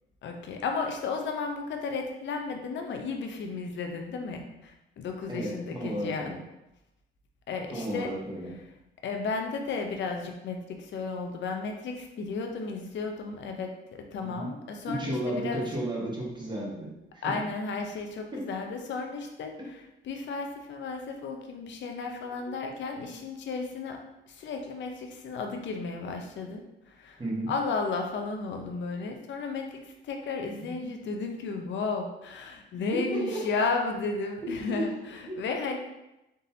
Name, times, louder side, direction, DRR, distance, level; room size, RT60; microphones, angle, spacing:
voice 1, 0.2-6.3 7.5-8.1 9.0-13.7 14.1-15.6 17.2-24.0 24.3-26.6 26.9-27.2 27.5-35.8, left 4 dB, 65° left, 3 dB, 0.7 m, -33 dB
voice 2, 5.3-6.4 7.7-8.5 14.2-14.5 14.9-17.4 18.3-18.5 19.6-19.7 22.4-22.5 27.2-27.5 30.6-30.7 32.9-33.4 34.4-34.9 35.3-35.4, right 1 dB, 20° right, -3 dB, 1.4 m, -33 dB
4.0 x 3.9 x 2.8 m, 0.93 s
cardioid pair, 90°, 20 cm